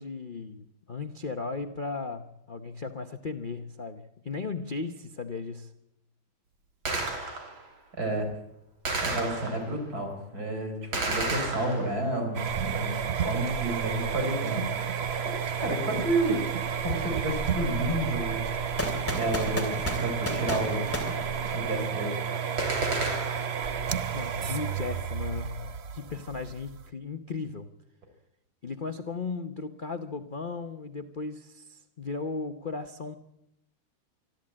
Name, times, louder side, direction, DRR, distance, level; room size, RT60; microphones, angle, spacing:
voice 1, 0.0-5.7 24.1-27.7 28.6-33.1, left 4 dB, 65° left, 7 dB, 0.5 m, -36 dB
Gunshot gunfire, 6.9-7.7 8.9-9.8 10.9-12.2 22.6-23.7, right 2 dB, 65° right, 4.0 m, -31 dB
voice 2, 8.0-8.3 9.0-14.8 15.2-16.4 16.8-18.5 18.9-20.9 21.5-22.2, right 1 dB, 40° right, 5 dB, 4.8 m, -31 dB
sound 1, 12.3-26.9, right 7 dB, 85° right, 0.5 m, -31 dB
sound 2, 18.8-22.0, equal, 5° left, 2.8 m, -34 dB
25.5 x 13.5 x 8.7 m, 0.84 s
omnidirectional pair, 2.4 m